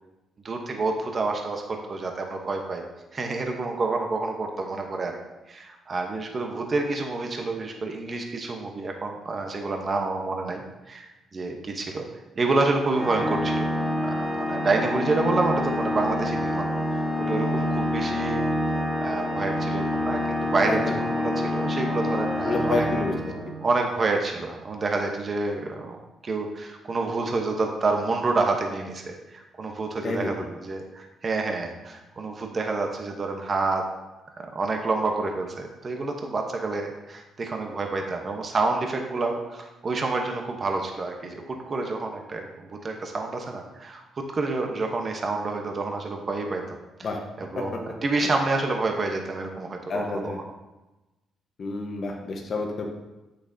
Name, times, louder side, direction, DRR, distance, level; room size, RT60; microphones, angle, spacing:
voice 1, 0.4-2.8 3.1-5.2 5.5-12.0 12.4-13.7 14.0-18.4 19.0-22.9 23.6-33.8 34.4-46.8 47.4-50.3, right 3 dB, 40° right, 3 dB, 1.0 m, -28 dB
Organ, 12.9-23.8, left 1 dB, 5° right, 1.1 m, -27 dB
voice 2, 22.4-23.3 30.0-30.5 47.0-47.2 47.5-47.8 48.2-48.3 49.9-50.4 51.6-52.9, left 3 dB, 50° left, 1 dB, 1.1 m, -29 dB
8.2 x 6.7 x 2.7 m, 1.0 s
cardioid pair, 90°, 0 cm